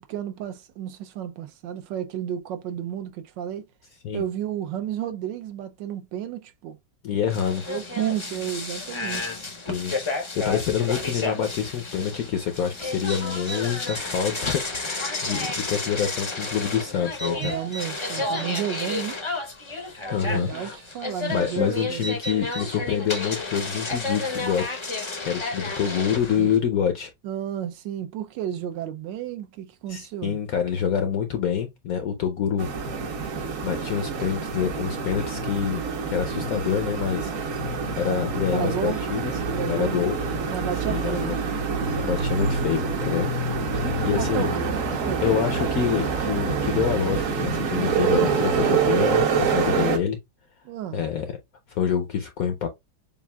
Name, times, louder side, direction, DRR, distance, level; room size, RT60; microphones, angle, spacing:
voice 1, 0.0-3.7 4.1-6.8 7.7-9.3 17.4-19.2 20.2-22.1 26.3-26.5 27.2-30.4 38.5-39.0 39.5-40.0 40.5-41.3 43.7-45.5 50.6-51.0, right 10 dB, 75° right, 1.2 m, -32 dB
voice 2, 7.0-7.6 9.3-17.6 20.1-20.8 21.3-24.8 25.2-27.1 29.9-32.7 33.6-35.8 36.1-37.3 38.0-39.4 39.7-40.2 40.8-41.4 42.0-43.3 43.7-44.5 45.2-50.2 50.9-51.4 51.7-52.7, left 8 dB, 70° left, 0.8 m, -27 dB
sound 1, 7.3-26.6, left 3 dB, 45° left, 0.3 m, -31 dB
sound 2, 32.6-50.0, right 5 dB, 55° right, 1.0 m, -26 dB
7.1 x 2.4 x 2.2 m
omnidirectional pair, 2.1 m